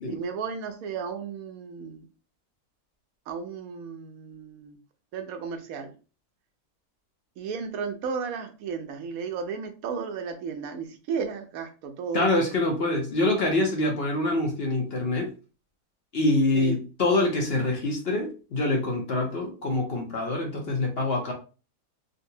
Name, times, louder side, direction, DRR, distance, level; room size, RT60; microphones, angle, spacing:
voice 1, 0.1-2.1 3.3-4.8 5.1-5.9 7.4-12.5 16.5-16.8, right 6 dB, 75° right, 7 dB, 1.0 m, -34 dB
voice 2, 12.1-15.3 16.1-21.3, left 2 dB, 50° left, 1 dB, 0.9 m, -25 dB
3.8 x 2.2 x 2.7 m, 0.34 s
omnidirectional pair, 1.6 m